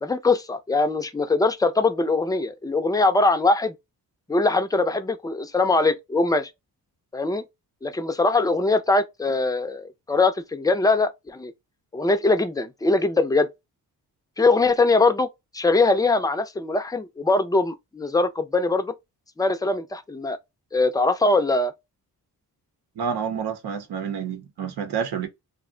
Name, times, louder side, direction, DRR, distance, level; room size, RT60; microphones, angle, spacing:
voice 1, 0.0-3.7 4.3-6.5 7.1-7.4 7.8-11.5 11.9-13.5 14.4-15.3 15.5-18.9 19.4-20.4 20.7-21.7, left 3 dB, 10° left, 0.4 m, -22 dB
voice 2, 23.0-25.3, right 7 dB, 90° right, 0.8 m, -29 dB
2.4 x 2.1 x 3.7 m
wide cardioid pair, 125°, 38 cm